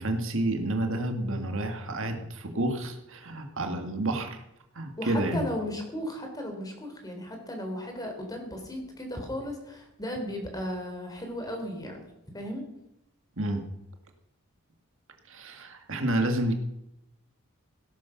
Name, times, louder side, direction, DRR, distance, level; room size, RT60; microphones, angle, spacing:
voice 1, 0.0-4.4 4.8-5.5 13.4-13.6 15.3-16.5, right 1 dB, 60° right, 5 dB, 1.9 m, -29 dB
voice 2, 5.0-12.0 12.3-12.6, left 1 dB, 15° left, 3 dB, 3.9 m, -35 dB
17.0 x 12.0 x 6.0 m, 0.82 s
head